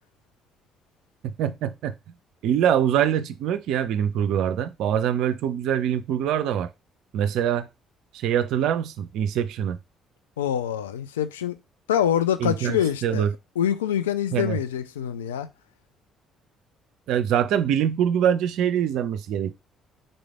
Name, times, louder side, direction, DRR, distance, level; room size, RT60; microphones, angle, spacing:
voice 1, 1.2-1.9 2.4-6.7 7.1-7.7 8.1-9.8 12.4-13.3 14.3-14.6 17.1-19.5, right 9 dB, 60° right, 0.4 m, -24 dB
voice 2, 10.4-11.6 11.9-13.3 13.6-15.5, left 10 dB, 75° left, 0.3 m, -25 dB
3.9 x 3.2 x 3.5 m
figure-of-eight pair, 45°, 0 cm